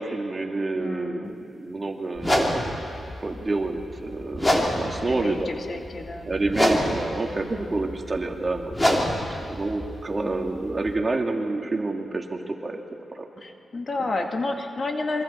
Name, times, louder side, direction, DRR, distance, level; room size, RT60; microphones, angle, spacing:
voice 1, 0.0-2.6 3.2-5.5 6.2-8.8 9.3-12.8 13.2-13.3, right 2 dB, 30° right, 2 dB, 2.1 m, -28 dB
voice 2, 0.8-1.3 2.2-2.3 5.1-6.4 7.3-7.8 10.2-10.7 13.4-15.2, left 2 dB, 45° left, 3 dB, 1.9 m, -31 dB
sound 1, 2.2-10.9, equal, 15° left, 3.1 m, -27 dB
27.0 x 23.5 x 4.3 m, 2.6 s
cardioid pair, 85°, 0 cm